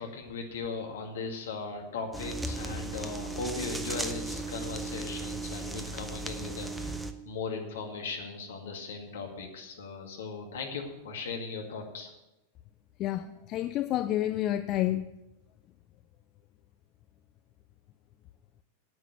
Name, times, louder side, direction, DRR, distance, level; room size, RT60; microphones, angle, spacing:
voice 1, 0.0-12.1, left 4 dB, 60° left, 2.1 m, -38 dB
sound 1, 2.1-7.1, right 2 dB, 5° right, 0.8 m, -36 dB
voice 2, 13.0-15.0, left 13 dB, 35° left, 0.4 m, -29 dB
9.6 x 9.1 x 6.9 m
figure-of-eight pair, 90°, 0 cm